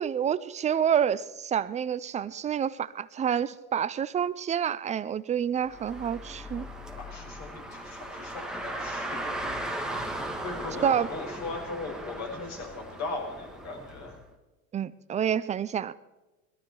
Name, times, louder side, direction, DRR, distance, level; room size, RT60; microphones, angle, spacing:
voice 1, 0.0-6.7 10.8-11.1 14.7-15.9, right 8 dB, 20° right, 17 dB, 0.4 m, -28 dB
Car, 5.6-14.2, right 1 dB, ahead, 1.8 m, -37 dB
voice 2, 7.0-9.6 10.4-14.2, left 3 dB, 40° left, 0 dB, 6.4 m, -39 dB
21.0 x 12.5 x 4.7 m, 1.1 s
hypercardioid pair, 105°, 42 cm